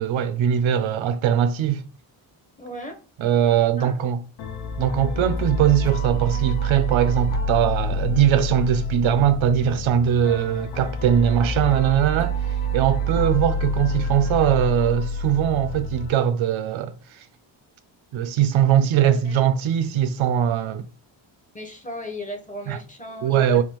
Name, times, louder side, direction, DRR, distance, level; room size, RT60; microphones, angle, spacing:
voice 1, 0.0-1.8 3.2-4.2 4.8-12.3 12.7-16.9 18.1-20.9 22.7-22.8 23.2-23.6, right 9 dB, 75° right, 0.5 m, -21 dB
voice 2, 2.6-3.0 3.8-3.9 4.7-5.0 19.0-19.4 21.5-23.6, equal, 15° left, 0.7 m, -36 dB
sound 1, 4.4-16.1, equal, 90° left, 0.6 m, -27 dB
3.5 x 2.3 x 2.9 m
cardioid pair, 110°, 47 cm